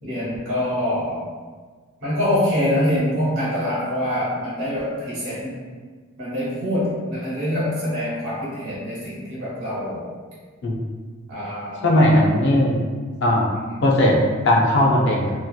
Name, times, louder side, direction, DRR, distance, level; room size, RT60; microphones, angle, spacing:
voice 1, 0.0-1.2 2.0-5.5 6.2-10.1 11.3-12.2 13.5-13.8, left 1 dB, 60° right, -9 dB, 1.0 m, -25 dB
voice 2, 11.8-12.8 13.2-13.5 13.8-14.2 14.4-15.3, left 1 dB, 50° left, -1 dB, 0.4 m, -17 dB
2.6 x 2.1 x 2.2 m, 1.5 s
head